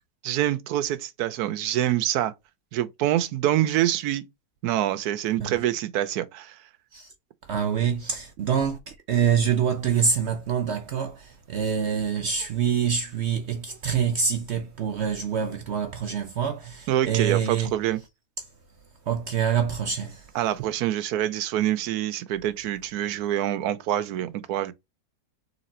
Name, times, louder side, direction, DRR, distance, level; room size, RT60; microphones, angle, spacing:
voice 1, 0.2-2.3 2.7-4.3 4.6-6.6 16.9-18.0 20.3-24.7, right 12 dB, 80° right, 1.1 m, -26 dB
voice 2, 7.5-17.7 19.1-20.3, right 7 dB, 65° right, 0.7 m, -26 dB
4.0 x 2.9 x 4.2 m
omnidirectional pair, 1.6 m